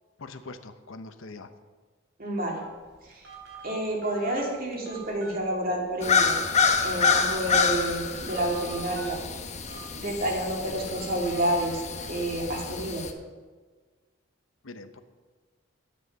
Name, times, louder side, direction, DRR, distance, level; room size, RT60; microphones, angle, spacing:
voice 1, 0.2-1.5 14.6-15.0, left 3 dB, 80° left, 9 dB, 0.8 m, -42 dB
voice 2, 2.2-2.6 3.1-3.3 3.6-6.4 6.8-9.2 9.9-11.8 12.1-13.1, right 1 dB, 45° right, -1 dB, 2.5 m, -29 dB
Telephone, 2.5-12.3, right 4 dB, 65° right, 3.3 m, -47 dB
sound 1, 6.0-13.1, left 5 dB, 35° left, 0.9 m, -27 dB
9.8 x 8.3 x 6.5 m, 1.4 s
head